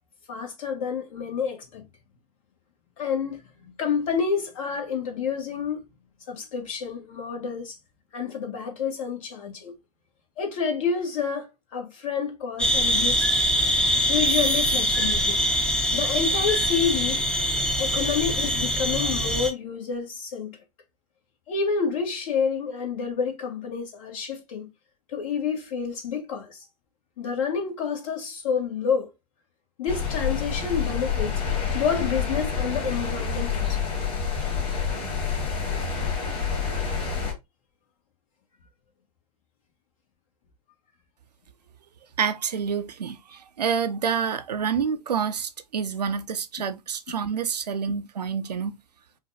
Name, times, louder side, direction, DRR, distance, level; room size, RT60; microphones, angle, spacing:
voice 1, 0.3-1.9 3.0-5.8 6.3-7.7 8.1-9.7 10.4-13.3 14.1-15.4 15.9-17.2 17.8-20.6 21.5-24.7 25.1-26.6 27.2-29.1 29.8-31.3 31.7-33.8, left 6 dB, 55° left, 1.5 m, -29 dB
sound 1, 12.6-19.5, equal, 5° left, 0.6 m, -23 dB
sound 2, 29.9-37.3, left 6 dB, 30° left, 1.9 m, -28 dB
voice 2, 42.2-48.8, right 6 dB, 80° right, 0.5 m, -28 dB
5.6 x 2.3 x 2.6 m
figure-of-eight pair, 95°, 21 cm